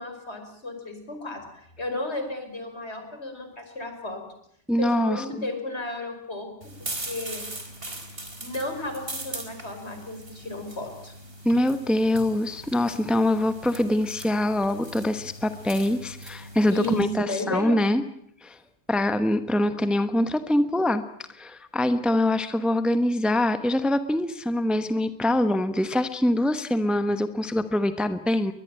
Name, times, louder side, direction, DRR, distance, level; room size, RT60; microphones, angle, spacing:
voice 1, 0.0-4.2 4.8-6.5 7.0-7.4 8.4-11.1 16.7-17.8, left 2 dB, 75° left, 6 dB, 5.5 m, -33 dB
voice 2, 4.7-5.5 11.4-18.0 18.4-18.6 18.9-21.0 21.3-28.5, left 1 dB, ahead, 10 dB, 1.1 m, -24 dB
sound 1, 6.6-17.0, right 1 dB, 60° right, 4.3 m, -40 dB
22.0 x 21.5 x 9.0 m, 0.70 s
omnidirectional pair, 1.1 m